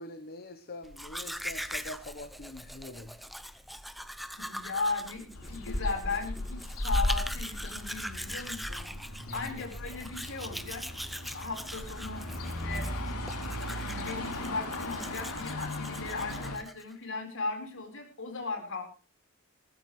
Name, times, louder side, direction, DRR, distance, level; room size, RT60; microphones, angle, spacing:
voice 1, 0.0-3.2 9.2-9.6, left 2 dB, 45° left, 8 dB, 1.1 m, -44 dB
Domestic sounds home sounds, 0.8-16.9, equal, ahead, 0.7 m, -42 dB
voice 2, 4.3-8.9 9.3-10.9 11.3-12.9 13.8-18.8, left 3 dB, 60° left, 4 dB, 4.7 m, -37 dB
sound 1, 5.3-16.5, left 1 dB, 85° left, 3.1 m, -36 dB
sound 2, 9.8-15.3, left 1 dB, 35° right, 4.4 m, -46 dB
20.5 x 15.0 x 3.3 m, 0.34 s
head